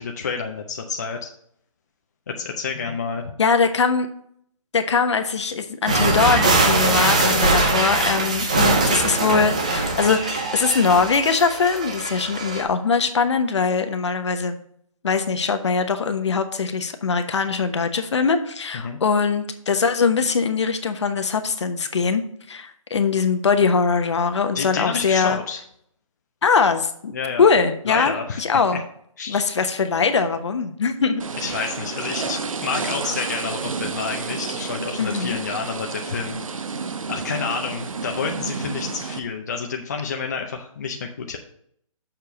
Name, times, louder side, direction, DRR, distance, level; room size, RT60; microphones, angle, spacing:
voice 1, 0.0-1.3 2.3-3.3 18.7-19.0 24.5-25.6 27.1-27.5 27.9-28.4 28.7-28.8 29.2-29.4 31.4-36.4 37.1-41.4, left 5 dB, 30° left, 2 dB, 0.6 m, -29 dB
voice 2, 3.4-4.1 4.7-14.6 15.0-22.2 22.5-25.4 26.4-27.1 27.4-28.8 29.3-31.2 35.0-35.4, left 5 dB, 55° left, 8 dB, 1.0 m, -21 dB
sound 1, 5.9-12.6, right 2 dB, 10° right, 0.4 m, -21 dB
sound 2, 31.2-39.2, right 4 dB, 75° right, 0.9 m, -30 dB
6.9 x 4.4 x 6.7 m, 0.67 s
hypercardioid pair, 170°, 18 cm